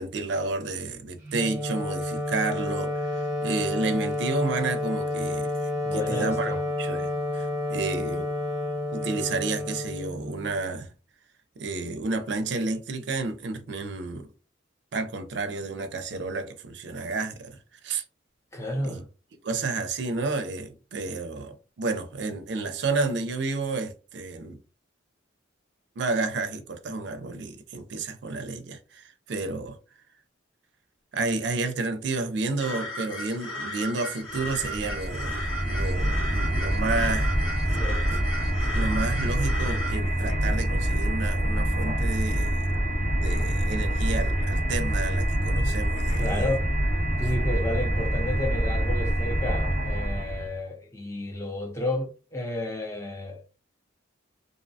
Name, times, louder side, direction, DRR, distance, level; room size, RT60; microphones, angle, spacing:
voice 1, 0.0-5.5 5.9-8.3 8.9-10.9 11.6-14.3 14.9-17.6 17.8-18.0 18.8-19.0 19.4-24.6 26.0-29.8 31.1-37.4 37.7-37.8 38.1-42.7 43.1-46.5, right 3 dB, 60° right, 0.4 m, -31 dB
Wind instrument woodwind instrument, 1.2-10.6, left 2 dB, 10° right, 0.9 m, -30 dB
voice 2, 5.8-6.6 18.5-19.0 36.6-36.7 37.7-38.0 46.2-46.6 47.2-53.6, left 1 dB, 15° left, 0.5 m, -32 dB
sound 1, 32.6-39.9, left 1 dB, 80° left, 1.4 m, -36 dB
sound 2, 34.4-50.5, right 1 dB, 60° left, 1.2 m, -26 dB
2.6 x 2.1 x 2.6 m
head